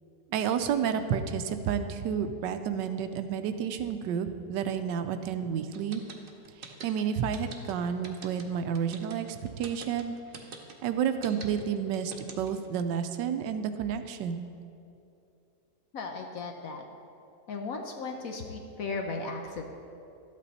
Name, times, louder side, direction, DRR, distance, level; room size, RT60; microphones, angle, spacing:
voice 1, 0.3-6.0 6.6-10.1 10.8-14.4, right 8 dB, 80° right, 9 dB, 1.2 m, -30 dB
sound 1, 5.7-12.7, right 5 dB, 45° right, 0.7 m, -44 dB
voice 2, 15.9-16.8 17.5-19.7, left 3 dB, 60° left, 3 dB, 1.0 m, -36 dB
12.5 x 8.4 x 4.1 m, 2.6 s
omnidirectional pair, 2.0 m